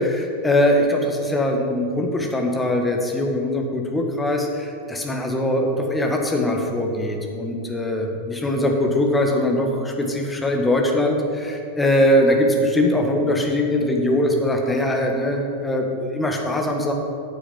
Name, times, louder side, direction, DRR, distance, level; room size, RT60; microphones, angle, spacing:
voice 1, 0.0-16.9, left 1 dB, 10° left, 2 dB, 1.6 m, -21 dB
9.3 x 6.9 x 7.7 m, 2.6 s
figure-of-eight pair, 90°, 0 cm